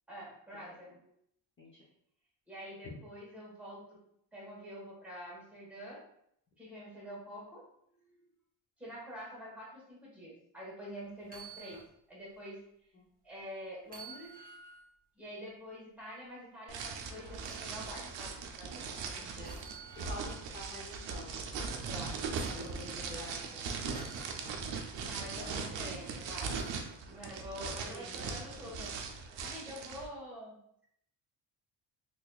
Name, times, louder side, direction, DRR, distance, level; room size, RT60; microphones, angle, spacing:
voice 1, 0.1-1.1 2.5-4.0 4.3-6.0 6.6-7.7 7.9-8.2 8.8-11.8 12.1-12.6 13.2-14.4 15.1-18.8 21.8-23.6 25.0-26.6 27.1-29.0 29.4-30.9, equal, 5° right, -7 dB, 1.2 m, -47 dB
voice 2, 0.6-1.0 1.6-1.7 2.8-2.9 12.9-13.1 19.2-19.5 20.0-21.4 22.6-23.8 24.4-24.6 25.3-25.8 27.9-28.3, left 1 dB, 30° left, -5 dB, 0.6 m, -48 dB
sound 1, 11.2-11.9 12.3-12.4 13.8-14.9 17.4-17.7 19.4-20.4 21.9-22.8 23.9-24.4 26.6-26.9 28.7-28.8, right 3 dB, 20° right, 0.7 m, -50 dB
sound 2, 16.7-30.1, right 5 dB, 70° right, 0.6 m, -40 dB
4.0 x 2.6 x 2.3 m, 0.72 s
cardioid pair, 155°, 45 cm